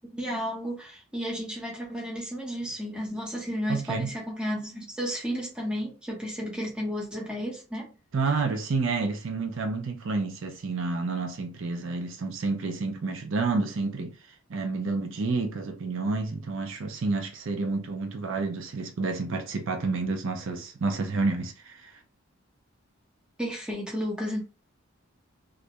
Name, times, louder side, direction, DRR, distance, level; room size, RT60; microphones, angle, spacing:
voice 1, 0.1-7.9 23.4-24.4, equal, 5° right, 0.7 m, -33 dB
voice 2, 3.7-4.1 8.1-22.0, right 3 dB, 65° right, 0.5 m, -29 dB
2.4 x 2.1 x 2.7 m
head